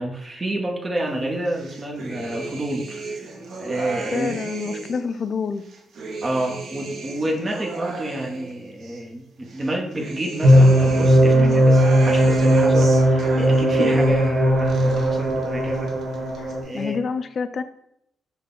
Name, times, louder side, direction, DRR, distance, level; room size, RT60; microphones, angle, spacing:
voice 1, 0.0-3.3 3.6-4.4 4.6-4.9 6.2-15.9 16.6-17.0, right 1 dB, 25° right, 0 dB, 0.8 m, -29 dB
sound 1, 1.5-5.1 5.6-9.0 9.5-14.3 14.6-15.5 15.7-16.5, right 3 dB, 65° right, 0.7 m, -35 dB
voice 2, 4.1-5.6 11.2-11.7 13.8-13.9 16.4-17.6, left 5 dB, 50° left, 11 dB, 0.3 m, -28 dB
sound 2, 10.4-16.6, equal, 45° right, 1.1 m, -17 dB
5.5 x 2.2 x 4.0 m, 0.75 s
cardioid pair, 115°, 0 cm